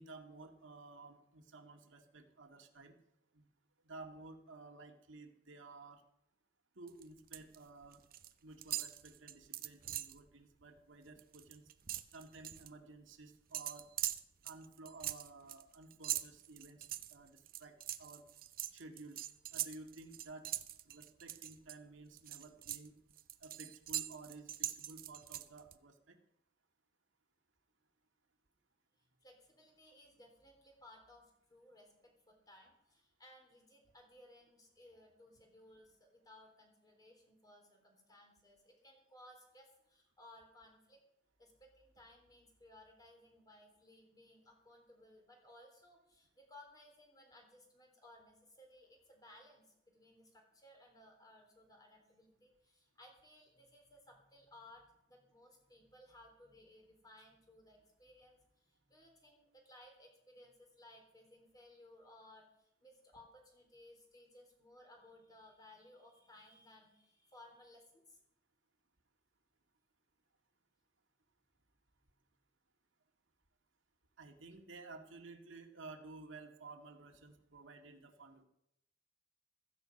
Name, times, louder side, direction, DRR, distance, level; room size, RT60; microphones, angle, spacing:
voice 1, 0.0-2.9 3.3-3.5 3.8-6.0 6.8-8.0 8.4-11.6 12.1-13.9 14.4-18.2 18.7-19.2 19.5-20.5 20.8-22.9 23.4-26.2 74.2-78.4, right 3 dB, 90° right, 4 dB, 2.0 m, -54 dB
sound 1, 6.9-7.6 7.8-8.3 8.6-10.2 10.6-10.8 11.1-12.7 13.5-21.8 22.2-25.8, right 12 dB, 50° right, 0.7 m, -42 dB
voice 2, 29.0-41.0 41.4-68.2, left 1 dB, 20° left, 2 dB, 3.8 m, -61 dB
15.5 x 14.5 x 5.3 m, 0.79 s
head